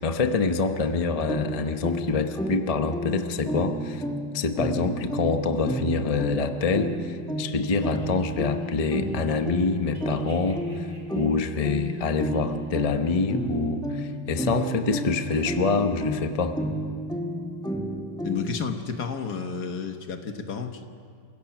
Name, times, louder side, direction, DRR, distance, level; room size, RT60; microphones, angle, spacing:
voice 1, 0.0-4.0 4.3-10.9 11.1-16.6, left 4 dB, 40° left, 7 dB, 0.5 m, -26 dB
sound 1, 1.3-18.7, right 1 dB, 5° left, 0.9 m, -31 dB
sound 2, 7.5-9.6 9.8-12.4, right 2 dB, 25° right, 4.7 m, -53 dB
voice 2, 18.2-20.9, left 6 dB, 60° left, 6 dB, 1.8 m, -31 dB
28.0 x 16.5 x 6.0 m, 2.3 s
omnidirectional pair, 2.0 m